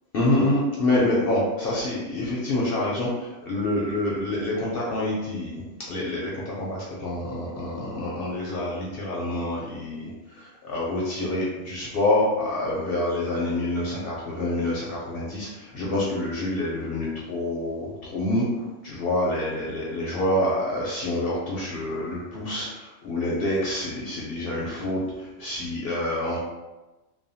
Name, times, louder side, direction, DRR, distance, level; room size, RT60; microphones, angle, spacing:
voice 1, 0.1-5.6 5.9-26.4, left 1 dB, 60° left, -5 dB, 0.7 m, -27 dB
2.7 x 2.1 x 2.7 m, 1.1 s
omnidirectional pair, 1.3 m